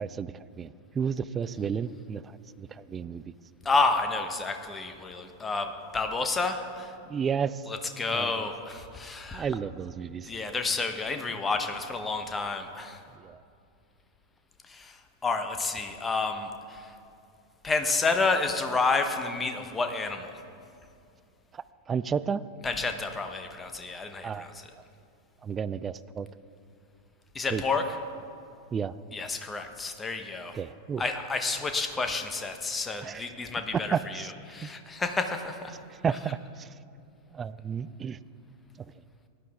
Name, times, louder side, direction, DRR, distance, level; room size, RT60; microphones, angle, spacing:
voice 1, 0.0-2.2 2.6-3.3 7.1-7.6 8.1-8.3 9.3-10.3 13.2-13.4 21.5-22.4 24.2-24.5 25.4-26.3 27.5-27.6 28.7-28.9 30.5-31.0 33.0-33.2 33.7-34.3 34.6-34.7 36.0-36.7 37.3-38.2, right 7 dB, 20° right, 17 dB, 0.3 m, -32 dB
voice 2, 3.6-6.9 7.7-9.5 10.3-13.0 14.7-15.0 15.2-16.9 17.6-20.4 22.6-24.7 27.3-28.0 29.1-30.6 31.0-35.7 36.1-36.4, left 3 dB, 15° left, 7 dB, 1.1 m, -30 dB
18.0 x 11.5 x 3.6 m, 2.5 s
figure-of-eight pair, 90°, 0 cm